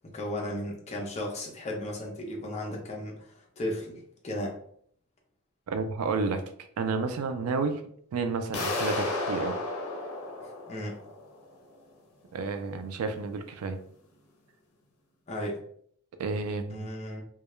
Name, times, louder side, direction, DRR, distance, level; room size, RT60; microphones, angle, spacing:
voice 1, 0.1-4.6 10.7-11.0 15.3-15.6 16.7-17.2, left 1 dB, 30° left, -1 dB, 0.6 m, -35 dB
voice 2, 5.7-6.4 6.8-7.8 8.1-9.6 12.3-13.8 16.2-16.9, right 4 dB, 85° right, 8 dB, 0.4 m, -30 dB
sound 1, 8.5-11.4, left 2 dB, 75° left, 0.6 m, -33 dB
2.3 x 2.1 x 2.9 m, 0.63 s
head